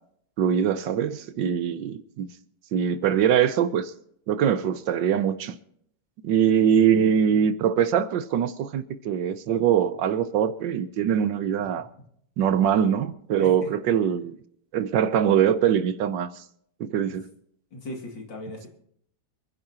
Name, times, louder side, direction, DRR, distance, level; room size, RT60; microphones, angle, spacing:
voice 1, 0.4-2.3 2.7-3.9 4.3-5.5 6.2-11.9 12.4-14.4 14.7-16.3 16.8-17.2, right 8 dB, 70° right, 1.4 m, -23 dB
voice 2, 17.7-18.7, left 2 dB, 65° left, 3.1 m, -37 dB
28.0 x 10.5 x 2.9 m
omnidirectional pair, 2.1 m